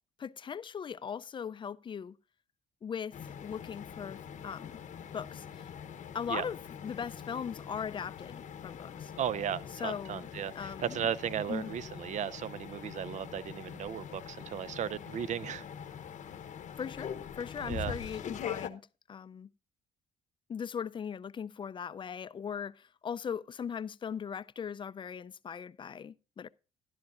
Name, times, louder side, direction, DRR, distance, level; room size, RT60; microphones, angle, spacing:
voice 1, 0.2-2.2 2.8-4.7 5.1-5.7 6.1-9.1 9.8-10.3 10.6-11.1 11.5-11.7 16.8-18.8 19.1-19.5 20.5-26.5, left 7 dB, 35° left, 0.4 m, -39 dB
sound 1, 3.1-18.7, left 8 dB, 55° left, 0.9 m, -43 dB
voice 2, 9.2-15.6 17.6-18.0, right 9 dB, 55° right, 0.5 m, -36 dB
13.0 x 11.5 x 2.5 m
cardioid pair, 105°, 15 cm